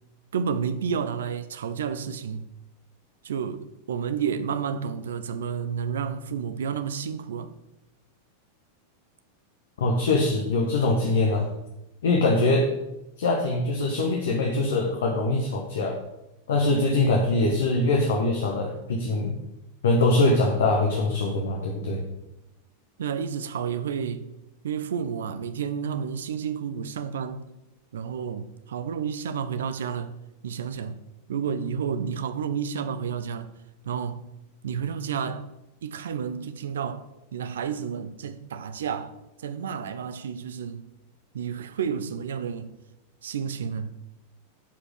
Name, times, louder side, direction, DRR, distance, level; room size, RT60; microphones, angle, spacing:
voice 1, 0.3-2.5 3.2-7.5 23.0-24.3 24.6-27.5 27.9-31.0 31.3-33.5 33.8-34.3 34.6-35.5 35.8-40.9 41.3-42.8 43.2-44.0, right 7 dB, 65° right, 0.7 m, -31 dB
voice 2, 9.8-11.5 12.0-12.7 13.2-15.9 16.5-19.4 19.8-22.0, left 2 dB, 60° left, 1.4 m, -23 dB
11.5 x 5.1 x 6.5 m
figure-of-eight pair, 90°, 0 cm